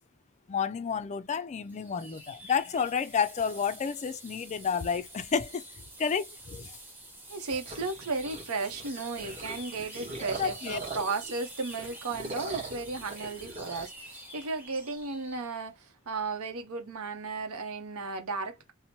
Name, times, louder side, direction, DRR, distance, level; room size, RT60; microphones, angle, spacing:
voice 1, 0.5-5.6 6.0-6.8 10.4-10.8, left 6 dB, 30° left, 0.3 m, -30 dB
sound 1, 1.7-15.5, right 1 dB, 10° right, 0.8 m, -47 dB
voice 2, 7.3-18.7, right 3 dB, 80° right, 0.8 m, -35 dB
sound 2, 7.5-11.3 11.7-13.9, right 3 dB, 30° right, 1.1 m, -41 dB
2.9 x 2.1 x 2.7 m
head